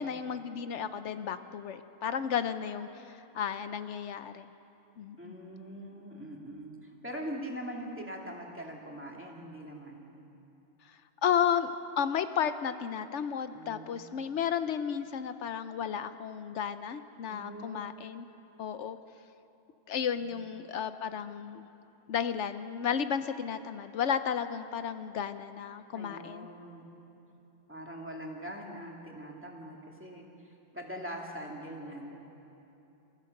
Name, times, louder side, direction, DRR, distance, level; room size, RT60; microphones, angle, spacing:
voice 1, 0.0-2.9 3.3-4.5 5.0-5.3 11.2-18.3 18.6-19.0 19.9-21.7 22.1-26.5, left 8 dB, 80° left, 11 dB, 1.0 m, -33 dB
voice 2, 5.2-10.0 13.5-14.1 17.3-17.8 20.2-20.4 25.9-26.9 27.7-32.1, equal, 10° right, -1 dB, 2.4 m, -42 dB
27.5 x 15.5 x 6.6 m, 2.9 s
omnidirectional pair, 1.2 m